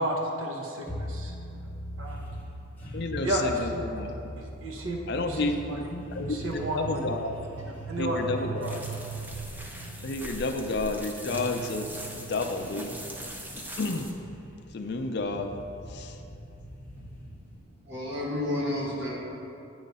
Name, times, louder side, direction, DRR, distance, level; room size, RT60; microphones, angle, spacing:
voice 1, 0.0-1.3 2.0-2.2 3.2-3.8 4.4-5.9 6.2-7.0 7.9-8.2 8.6-8.8, right 1 dB, 80° right, 0 dB, 0.8 m, -32 dB
sound 1, 0.9-17.7, right 2 dB, 10° left, 0.9 m, -40 dB
voice 2, 2.9-4.1 5.1-7.3 8.0-8.8 10.0-12.9 13.6-14.1 14.7-15.5 15.9-16.1, left 2 dB, 55° left, 6 dB, 0.4 m, -31 dB
sound 2, 8.6-14.1, right 1 dB, 10° right, 0.4 m, -41 dB
voice 3, 17.8-19.1, left 1 dB, 55° right, -5 dB, 1.6 m, -30 dB
9.1 x 3.2 x 5.3 m, 2.7 s
head